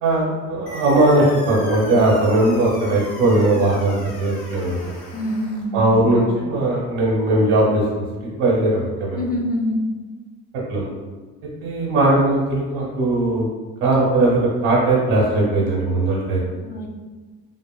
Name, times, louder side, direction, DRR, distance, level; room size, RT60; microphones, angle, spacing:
voice 1, 0.0-4.9 5.7-9.3 10.7-10.9 11.6-13.5 13.8-16.4, right 2 dB, 85° right, -4 dB, 0.8 m, -19 dB
sound 1, 0.7-5.7, left 1 dB, 70° left, 0.8 m, -38 dB
voice 2, 5.1-6.1 9.1-9.8 16.5-16.9, equal, 25° left, 1 dB, 0.5 m, -25 dB
2.7 x 2.4 x 2.2 m, 1.3 s
supercardioid pair, 75°, 39 cm